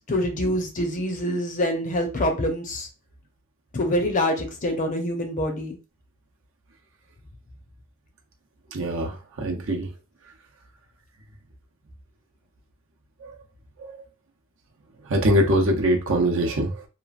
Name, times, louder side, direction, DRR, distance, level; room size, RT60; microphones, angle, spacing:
voice 1, 0.1-2.9 3.7-5.8, left 1 dB, 40° left, 0.7 m, -25 dB
voice 2, 8.7-9.9 13.2-13.3 13.8-14.0 15.0-16.9, right 1 dB, 65° right, 0.7 m, -23 dB
3.0 x 2.4 x 2.4 m
head